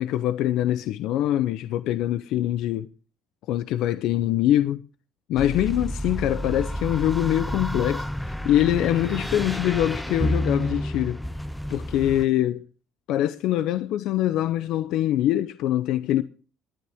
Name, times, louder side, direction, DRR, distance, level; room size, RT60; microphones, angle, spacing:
voice 1, 0.0-2.9 3.5-4.8 5.3-11.2 11.7-12.6 13.1-16.2, left 12 dB, 70° left, 0.7 m, -24 dB
sound 1, 5.4-12.3, equal, 5° left, 0.5 m, -30 dB
21.0 x 9.6 x 3.6 m
cardioid pair, 105°, 0 cm